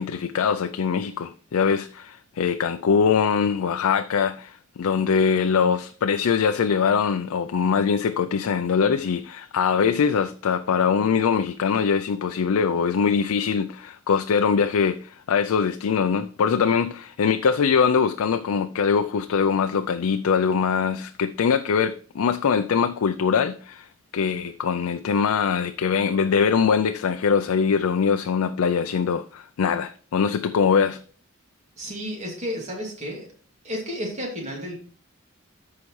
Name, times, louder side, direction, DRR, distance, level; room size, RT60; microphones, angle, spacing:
voice 1, 0.0-31.0, left 6 dB, 90° left, 0.4 m, -22 dB
voice 2, 31.8-33.3 33.6-34.7, equal, 35° right, 2.5 m, -32 dB
13.5 x 4.8 x 3.2 m
head